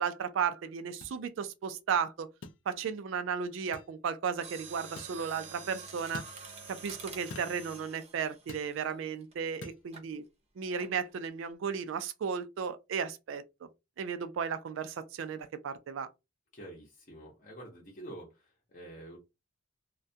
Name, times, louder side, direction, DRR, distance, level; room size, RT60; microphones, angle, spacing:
voice 1, 0.0-2.3 2.7-6.2 6.7-10.2 10.6-13.4 14.0-16.1, right 6 dB, 70° right, 0.3 m, -34 dB
sound 1, 1.0-1.2 2.4-2.6 3.7-3.9 5.0-5.2 6.1-6.4 7.3-7.6 8.5-8.7 9.6-9.8, left 3 dB, 65° left, 0.4 m, -45 dB
Mechanisms, 4.3-9.3 9.9-10.1 10.8-11.1 11.4-11.5, right 4 dB, 30° right, 0.6 m, -48 dB
voice 2, 16.5-19.2, right 1 dB, 40° left, 0.7 m, -47 dB
2.3 x 2.1 x 2.6 m
head